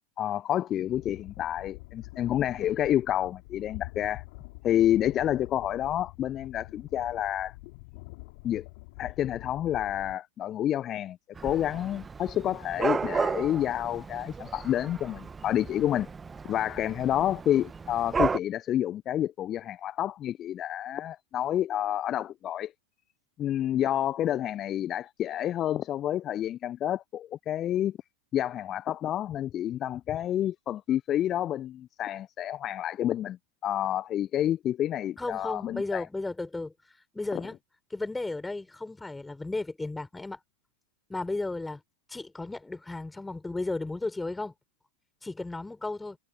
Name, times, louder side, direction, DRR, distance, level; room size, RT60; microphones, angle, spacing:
voice 1, 0.2-4.2 4.6-7.5 8.4-8.6 9.0-11.2 11.4-16.1 16.4-22.7 23.4-28.0 28.3-33.4 33.6-36.1, left 11 dB, 30° left, 1.1 m, -29 dB
sound 1, 0.9-10.2, left 27 dB, 45° left, 4.4 m, -46 dB
Dog / Cat, 11.4-18.4, right 5 dB, 15° right, 1.7 m, -33 dB
voice 2, 35.2-36.7 37.1-37.6 37.9-40.4 41.1-41.8 42.1-44.5 45.2-46.2, left 2 dB, 10° left, 4.9 m, -34 dB
figure-of-eight pair, 90°, 0 cm